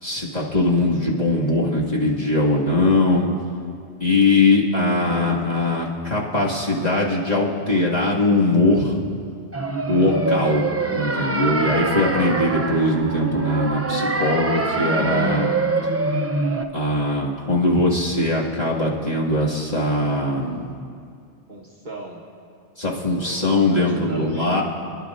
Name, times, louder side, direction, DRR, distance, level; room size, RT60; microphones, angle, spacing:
voice 1, 0.0-3.3 4.0-9.0 9.9-10.7 10.9-15.5 16.7-20.7 22.8-24.6, left 2 dB, 35° left, -6 dB, 2.2 m, -21 dB
sound 1, 9.5-16.6, right 2 dB, 20° right, 0.3 m, -24 dB
voice 2, 21.5-22.3 23.1-24.6, right 2 dB, 45° right, -1 dB, 1.3 m, -40 dB
26.5 x 11.5 x 2.5 m, 2.3 s
omnidirectional pair, 1.2 m